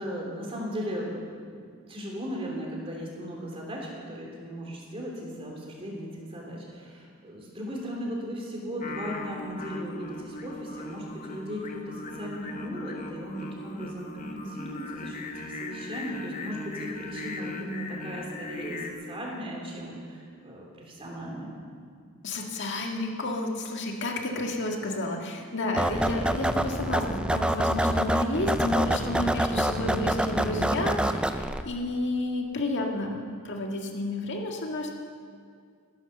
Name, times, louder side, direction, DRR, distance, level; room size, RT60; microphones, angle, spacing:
voice 1, 0.0-21.5, equal, 25° right, -2 dB, 3.1 m, -37 dB
Singing, 8.8-18.9, left 2 dB, 35° left, 1.1 m, -39 dB
voice 2, 22.2-34.9, left 2 dB, 55° left, 1 dB, 1.9 m, -31 dB
sound 1, 25.8-31.6, right 1 dB, 5° right, 0.4 m, -26 dB
14.5 x 11.5 x 6.9 m, 2.1 s
head